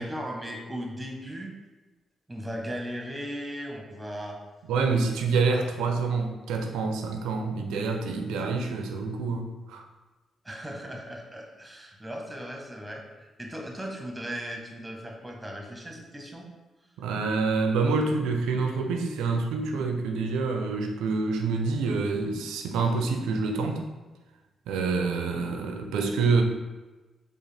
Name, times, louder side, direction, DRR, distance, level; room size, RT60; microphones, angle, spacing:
voice 1, 0.0-1.5 2.3-4.4 10.4-16.5, equal, 10° right, 1 dB, 1.0 m, -37 dB
voice 2, 4.7-9.8 17.0-23.8 24.7-26.4, right 4 dB, 85° right, 4 dB, 0.4 m, -27 dB
4.7 x 2.4 x 3.2 m, 1.2 s
supercardioid pair, 60°, 0 cm